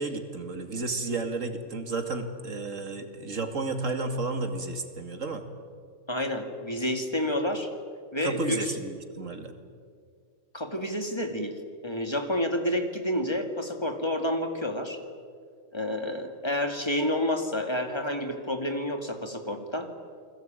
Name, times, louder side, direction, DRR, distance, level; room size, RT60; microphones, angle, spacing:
voice 1, 0.0-5.5 8.2-9.5, right 3 dB, 75° right, 6 dB, 2.7 m, -32 dB
voice 2, 6.1-7.7 8.1-8.6 10.5-11.6 11.8-15.0 15.7-19.9, left 1 dB, 20° left, 5 dB, 2.6 m, -29 dB
29.5 x 21.0 x 9.1 m, 2.1 s
omnidirectional pair, 1.3 m